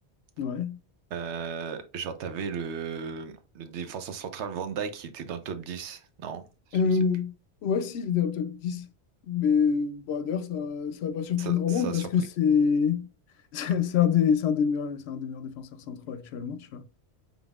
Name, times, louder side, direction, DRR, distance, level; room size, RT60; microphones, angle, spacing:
voice 1, 0.4-0.8 6.7-7.3 7.6-8.9 9.2-13.1 13.5-16.8, left 7 dB, 70° left, 0.8 m, -26 dB
voice 2, 1.1-6.4 6.7-6.8 11.4-12.1, right 6 dB, 90° right, 1.0 m, -35 dB
5.3 x 4.0 x 2.3 m
omnidirectional pair, 1.1 m